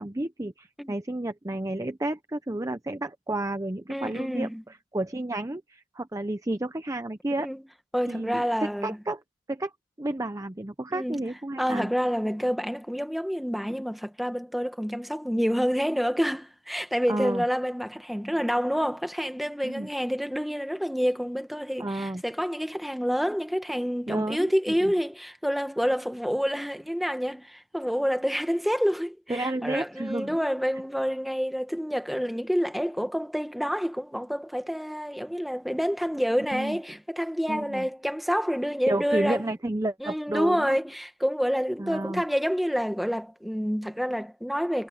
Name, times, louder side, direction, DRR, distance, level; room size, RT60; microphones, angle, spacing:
voice 1, 0.0-7.5 8.1-9.2 9.5-9.7 10.0-11.9 17.1-17.4 19.6-19.9 21.8-22.2 24.1-24.5 24.8-24.9 29.3-30.4 36.5-36.8 37.5-37.9 38.9-40.8 41.8-42.2, right 1 dB, 15° right, 0.6 m, -31 dB
voice 2, 3.9-4.6 7.4-7.6 7.9-9.0 10.9-11.2 11.6-39.4 40.0-44.9, equal, ahead, 1.3 m, -28 dB
head